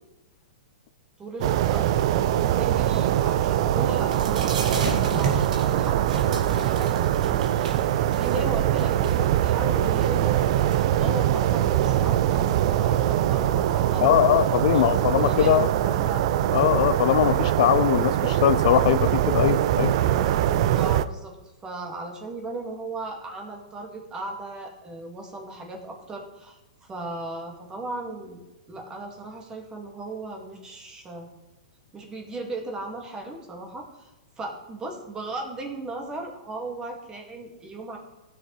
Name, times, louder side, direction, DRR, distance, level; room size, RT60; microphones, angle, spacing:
voice 1, 1.2-1.9 2.2-16.2 20.7-21.4 21.6-28.4 28.7-31.3 31.9-34.1 34.4-38.0, right 2 dB, 20° right, 1 dB, 2.0 m, -37 dB
sound 1, 1.4-21.1, right 12 dB, 55° right, 0.5 m, -23 dB
sound 2, 4.0-15.6, right 4 dB, 75° right, 2.0 m, -36 dB
voice 2, 14.0-15.7 16.5-19.9, left 12 dB, 55° left, 14 dB, 0.4 m, -21 dB
15.5 x 6.7 x 3.3 m, 1.0 s
hypercardioid pair, 135°, 4 cm